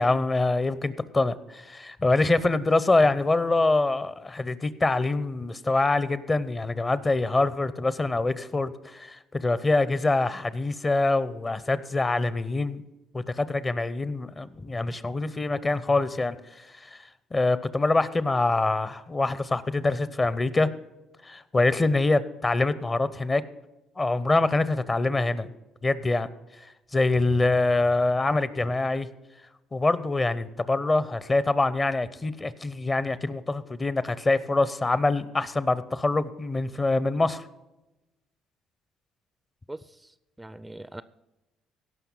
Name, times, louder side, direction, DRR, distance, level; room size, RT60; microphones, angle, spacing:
voice 1, 0.0-12.8 13.1-16.4 16.8-17.0 17.3-20.7 21.2-23.4 24.0-25.5 25.8-26.3 26.9-29.1 29.7-37.4, left 2 dB, 30° left, 16 dB, 0.7 m, -25 dB
voice 2, 39.7-41.0, right 1 dB, 10° right, 15 dB, 0.4 m, -42 dB
17.0 x 5.7 x 5.5 m, 1.0 s
hypercardioid pair, 55°, 0 cm